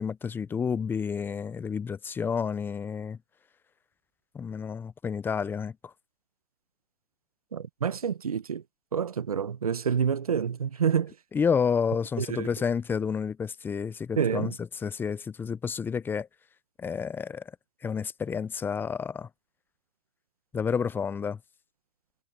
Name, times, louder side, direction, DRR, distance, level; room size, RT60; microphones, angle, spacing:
voice 1, 0.0-3.2 4.3-5.9 11.3-16.3 16.8-17.4 17.8-19.3 20.5-21.4, left 6 dB, 10° left, 0.6 m, -30 dB
voice 2, 7.5-8.6 8.9-11.1 12.2-12.5 14.2-14.5, right 7 dB, 85° right, 1.2 m, -28 dB
hypercardioid pair, 120°, 18 cm